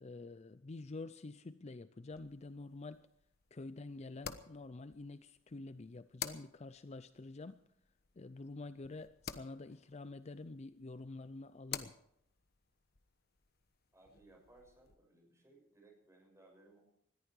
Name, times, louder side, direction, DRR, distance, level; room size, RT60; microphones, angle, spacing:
voice 1, 0.0-3.0 3.5-7.6 8.2-11.9, left 2 dB, 35° left, 13 dB, 0.5 m, -48 dB
sound 1, 2.1-14.9, left 8 dB, 50° left, 1.1 m, -52 dB
voice 2, 13.9-16.8, right 2 dB, 15° right, 1 dB, 6.5 m, -63 dB
20.5 x 14.0 x 4.7 m, 0.73 s
head